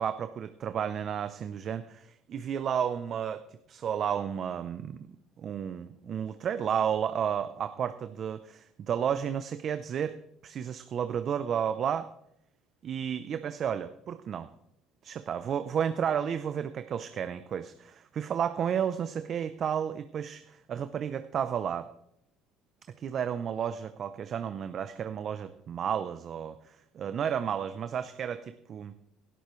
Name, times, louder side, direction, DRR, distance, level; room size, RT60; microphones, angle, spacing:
voice 1, 0.0-5.0 5.4-10.2 10.4-12.1 12.8-14.5 15.0-21.9 23.0-29.0, right 8 dB, 45° right, 10 dB, 0.7 m, -32 dB
17.0 x 12.0 x 3.2 m, 0.74 s
cardioid pair, 115°, 0 cm